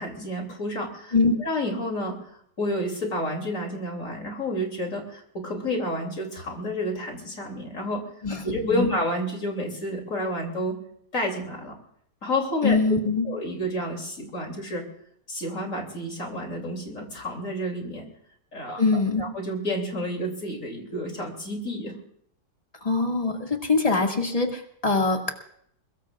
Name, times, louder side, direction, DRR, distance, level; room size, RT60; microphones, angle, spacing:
voice 1, 0.0-1.1 1.4-2.2 2.6-8.0 8.4-10.8 11.1-11.8 12.2-12.8 13.2-14.9 15.3-18.1 18.5-18.8 19.2-21.9, left 1 dB, 45° left, 2 dB, 3.2 m, -30 dB
voice 2, 8.2-8.9 12.6-13.3 18.8-19.2 22.8-25.3, left 3 dB, 20° left, 2 dB, 2.1 m, -23 dB
22.5 x 21.5 x 2.5 m, 0.67 s
omnidirectional pair, 1.9 m